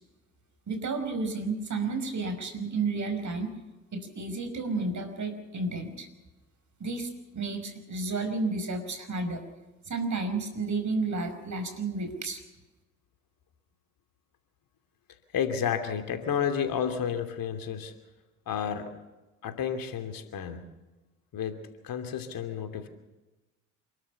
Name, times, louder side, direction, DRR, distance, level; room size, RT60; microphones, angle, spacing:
voice 1, 0.7-3.5 3.9-6.1 6.8-9.4 9.9-12.4, right 3 dB, 45° right, 8 dB, 5.4 m, -32 dB
voice 2, 15.3-17.9 18.5-18.9 19.4-20.6 21.3-22.9, left 8 dB, 55° left, 7 dB, 2.8 m, -31 dB
28.0 x 13.0 x 7.2 m, 1.1 s
hypercardioid pair, 50°, 40 cm